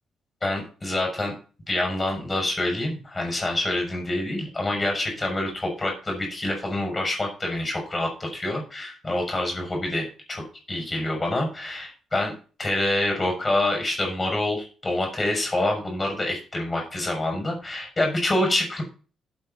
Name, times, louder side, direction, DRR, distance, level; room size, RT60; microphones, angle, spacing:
voice 1, 0.4-1.3 1.7-18.8, left 1 dB, 20° left, 2 dB, 6.6 m, -26 dB
12.0 x 8.1 x 4.2 m, 0.36 s
cardioid pair, 90°, 0 cm